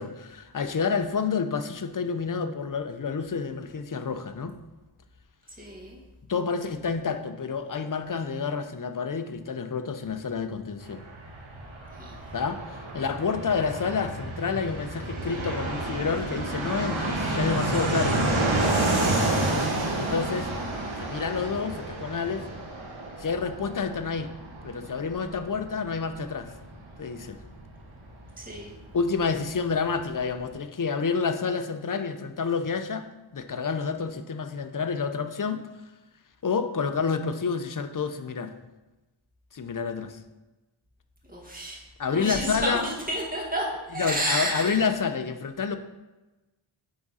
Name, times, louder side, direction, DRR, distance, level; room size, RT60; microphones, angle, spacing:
voice 1, 0.0-4.6 6.3-11.0 12.3-18.3 20.0-20.5 21.0-22.5 23.2-24.3 24.6-26.5 27.0-27.4 28.9-33.1 33.3-35.7 36.4-38.5 39.5-40.2 42.0-42.9 44.0-45.8, left 5 dB, 40° left, 9 dB, 0.6 m, -29 dB
voice 2, 5.6-6.0 12.0-12.1 28.4-28.7 41.3-41.8 42.1-44.8, right 1 dB, 20° right, -3 dB, 1.9 m, -31 dB
Fixed-wing aircraft airplane, 10.8-29.2 29.4-29.5 29.7-30.5, right 2 dB, 80° right, 1.4 m, -30 dB
9.6 x 3.6 x 4.1 m, 1.1 s
wide cardioid pair, 55°, 48 cm